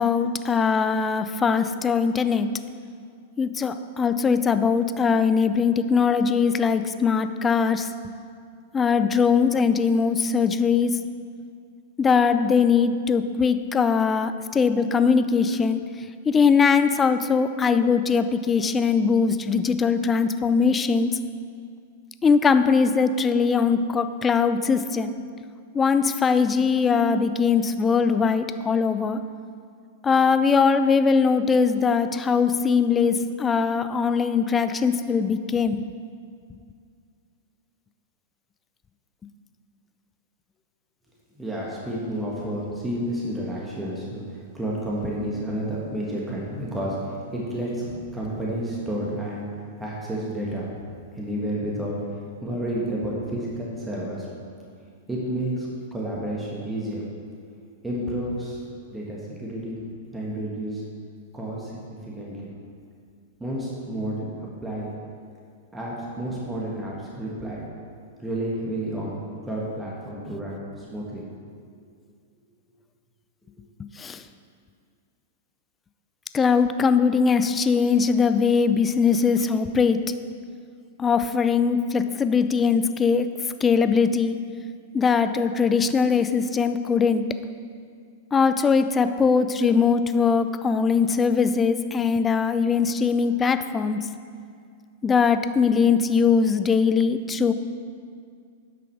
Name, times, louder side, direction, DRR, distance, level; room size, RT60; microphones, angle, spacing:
voice 1, 0.0-2.5 3.4-7.9 8.7-11.0 12.0-15.8 16.3-21.2 22.2-25.1 25.7-29.2 30.0-35.8 74.0-74.2 76.3-80.0 81.0-83.3 83.6-84.4 84.9-87.2 88.3-94.1 95.0-97.5, left 5 dB, 20° left, 10 dB, 0.4 m, -21 dB
voice 2, 41.4-49.5 49.8-50.9 51.1-51.9 52.4-54.3 55.1-57.0 57.8-58.6 58.9-59.8 60.1-60.8 61.3-62.5 63.4-64.3 64.6-64.9 65.7-67.6 68.2-71.2, right 1 dB, 10° right, -5 dB, 1.7 m, -30 dB
9.8 x 5.9 x 4.7 m, 2.2 s
hypercardioid pair, 105°, 0 cm